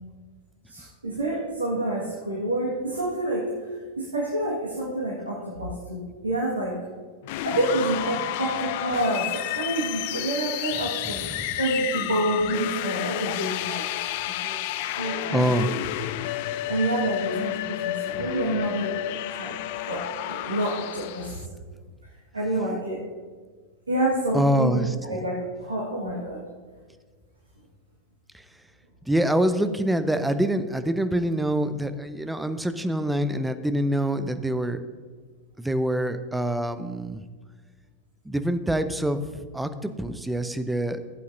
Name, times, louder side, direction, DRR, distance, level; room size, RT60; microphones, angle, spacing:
voice 1, 0.7-6.9 7.4-13.8 14.3-14.6 15.0-15.6 16.7-19.6 19.9-21.4 22.3-23.0 23.9-26.4, right 1 dB, 75° right, -5 dB, 1.8 m, -28 dB
sound 1, 7.2-21.4, left 13 dB, 50° left, 0.3 m, -31 dB
voice 2, 15.3-15.8 24.3-25.2 28.3-28.4 29.1-34.8 35.6-37.2 38.3-39.2 39.5-41.0, right 1 dB, 5° right, 10 dB, 0.6 m, -25 dB
15.5 x 8.3 x 2.7 m, 1.5 s
figure-of-eight pair, 90°, 0 cm